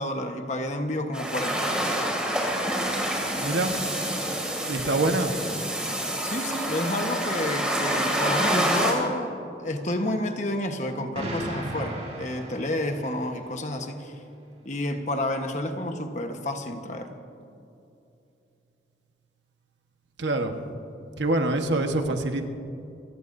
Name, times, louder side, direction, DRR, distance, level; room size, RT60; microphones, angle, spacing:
voice 1, 0.0-1.6 6.2-14.2 14.6-17.2, left 1 dB, 40° left, 5 dB, 1.2 m, -30 dB
sound 1, 1.1-8.9, right 1 dB, 5° right, 2.4 m, -27 dB
voice 2, 3.4-3.7 4.7-5.3 20.2-20.5 21.2-22.5, right 2 dB, 80° right, 5 dB, 1.3 m, -25 dB
Explosion, 11.1-13.3, right 1 dB, 35° right, 3.9 m, -35 dB
27.5 x 17.0 x 2.7 m, 2.7 s
head